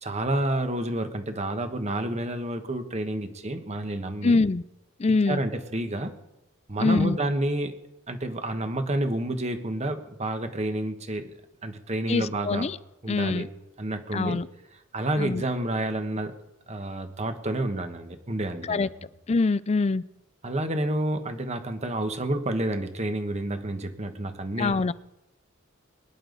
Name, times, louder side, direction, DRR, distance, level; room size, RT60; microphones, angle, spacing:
voice 1, 0.0-4.4 5.1-6.1 6.7-7.7 8.1-11.3 11.6-12.7 13.0-13.5 13.8-14.4 14.7-16.3 16.7-18.9 20.4-24.8, right 1 dB, 35° right, 7 dB, 1.3 m, -29 dB
voice 2, 4.2-4.6 5.0-5.4 6.8-7.2 12.1-12.8 13.1-13.5 14.1-14.5 15.2-15.4 18.7-18.9 19.3-20.0 24.6-24.9, left 3 dB, 30° left, 18 dB, 0.4 m, -24 dB
23.5 x 11.0 x 4.0 m, 0.92 s
head